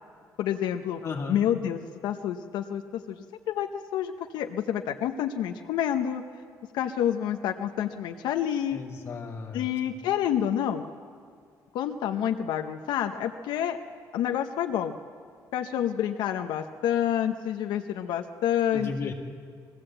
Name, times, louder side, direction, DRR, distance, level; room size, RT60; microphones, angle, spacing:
voice 1, 0.4-1.0 1.3-6.2 6.7-8.8 9.5-10.9 11.7-13.8 14.1-15.0 15.5-19.1, left 10 dB, 90° left, 5 dB, 0.8 m, -28 dB
voice 2, 1.0-1.4 8.7-10.0 18.7-19.1, left 4 dB, 40° left, 0 dB, 2.4 m, -35 dB
22.0 x 16.0 x 7.8 m, 2.1 s
cardioid pair, 170°, 7 cm